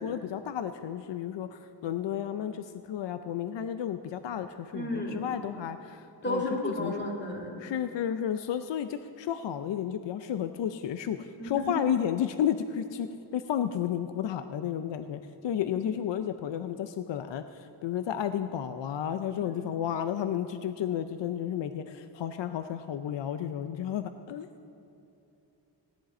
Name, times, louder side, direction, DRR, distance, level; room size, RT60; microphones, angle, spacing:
voice 1, 0.0-7.0 7.6-13.1 13.3-24.5, left 9 dB, 85° left, 9 dB, 0.6 m, -32 dB
voice 2, 4.7-5.2 6.2-7.6 11.4-11.6 15.7-15.9 19.4-19.5, left 1 dB, 25° left, -1 dB, 2.5 m, -33 dB
17.0 x 10.5 x 4.2 m, 2.8 s
wide cardioid pair, 105°, 42 cm